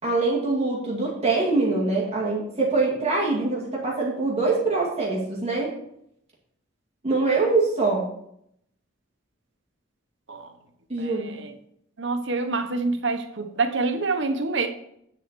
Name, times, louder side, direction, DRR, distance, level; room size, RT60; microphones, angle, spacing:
voice 1, 0.0-5.7 7.0-8.0 10.9-11.4, right 3 dB, 30° right, -3 dB, 2.2 m, -24 dB
voice 2, 11.0-11.5 12.0-14.7, right 3 dB, 65° right, 6 dB, 1.1 m, -27 dB
9.9 x 4.5 x 6.8 m, 0.73 s
head